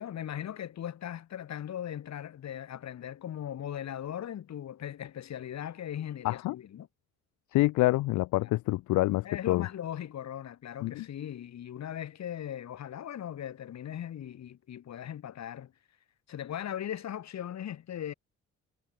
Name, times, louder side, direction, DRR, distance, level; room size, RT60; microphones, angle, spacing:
voice 1, 0.0-6.9 9.2-15.7 16.3-18.1, left 10 dB, 65° left, 2.9 m, -39 dB
voice 2, 6.2-6.6 7.5-9.7 10.8-11.1, left 18 dB, 80° left, 0.5 m, -27 dB
cardioid pair, 90°, 30 cm